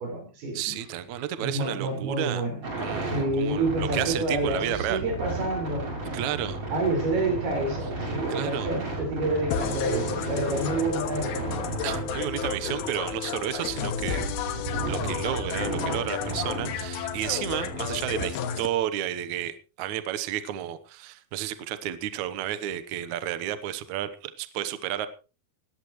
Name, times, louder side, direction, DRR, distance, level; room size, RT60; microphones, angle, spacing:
voice 1, 0.0-0.7 1.4-2.7 3.1-5.9 6.7-11.5, right 2 dB, 80° right, 2 dB, 7.1 m, -29 dB
voice 2, 0.5-2.4 2.8-5.0 6.1-6.6 8.3-8.7 11.8-14.3 14.9-25.1, right 11 dB, 65° right, 12 dB, 2.0 m, -32 dB
sound 1, 2.6-18.2, right 2 dB, 35° right, 7.6 m, -34 dB
sound 2, 9.5-18.7, left 8 dB, 80° left, 3.2 m, -32 dB
19.5 x 14.0 x 3.1 m, 0.33 s
omnidirectional pair, 4.4 m